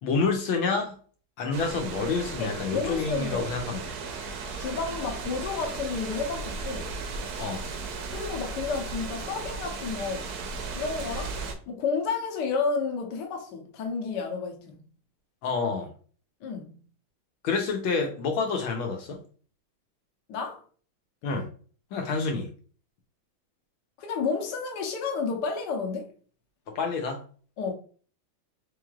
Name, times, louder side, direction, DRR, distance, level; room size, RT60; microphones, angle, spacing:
voice 1, 0.0-1.0 1.4-3.9 7.4-7.7 15.4-15.9 17.4-19.2 21.2-21.5 21.9-22.5 26.7-27.2, left 4 dB, 80° left, 1.6 m, -28 dB
sound 1, 1.5-11.5, right 4 dB, 65° right, 1.0 m, -36 dB
voice 2, 2.4-3.5 4.6-6.9 8.1-10.4 10.7-11.4 11.7-14.8 16.4-16.8 20.3-20.6 24.0-26.1 27.6-27.7, left 5 dB, 65° left, 1.3 m, -31 dB
4.4 x 3.2 x 2.3 m
omnidirectional pair, 2.3 m